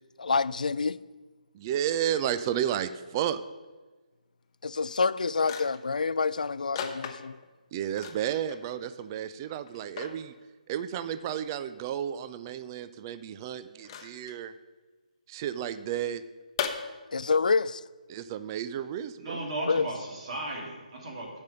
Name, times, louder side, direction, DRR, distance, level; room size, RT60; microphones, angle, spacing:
voice 1, 0.2-1.0 4.6-7.4 17.1-17.8 19.6-19.9, left 4 dB, 70° left, 0.3 m, -27 dB
voice 2, 1.5-3.4 7.7-10.3 10.7-14.5 15.3-16.2 18.1-19.5, right 10 dB, 25° right, 0.4 m, -32 dB
sound 1, 4.9-5.0 5.4-5.9 6.8-7.5 8.0-8.7 9.0-9.1 9.7-10.2 11.6-11.7 13.8-14.4 16.6-16.7, left 8 dB, 30° left, 0.9 m, -36 dB
voice 3, 19.2-21.4, right 2 dB, 45° right, 3.2 m, -36 dB
14.5 x 5.3 x 5.4 m
figure-of-eight pair, 145°, 4 cm